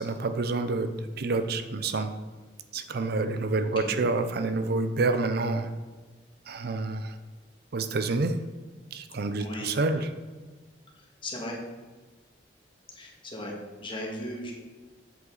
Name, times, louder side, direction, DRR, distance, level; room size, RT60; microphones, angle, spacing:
voice 1, 0.0-2.1 2.7-5.7 6.5-7.2 7.7-8.4 8.9-10.1, right 3 dB, 60° right, 9 dB, 0.6 m, -28 dB
voice 2, 3.6-4.0 9.4-9.7 11.0-11.6 12.9-13.5 13.8-14.5, left 1 dB, 30° left, -1 dB, 1.8 m, -37 dB
8.0 x 7.8 x 3.9 m, 1.3 s
head